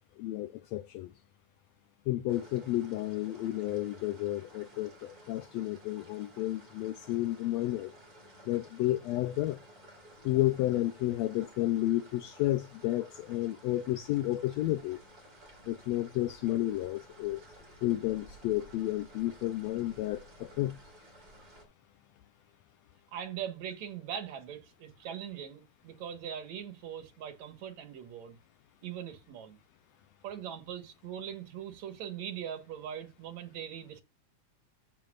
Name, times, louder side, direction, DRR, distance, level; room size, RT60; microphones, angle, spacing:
voice 1, 0.2-1.1 2.1-7.9 8.5-9.6 10.2-15.0 15.7-17.4 17.8-20.8, left 15 dB, 80° left, 1.6 m, -31 dB
sound 1, 2.3-21.7, right 1 dB, 30° right, 4.4 m, -55 dB
voice 2, 23.1-28.4 28.8-29.6 30.2-34.0, right 9 dB, 65° right, 2.5 m, -41 dB
14.0 x 5.4 x 2.4 m
omnidirectional pair, 3.5 m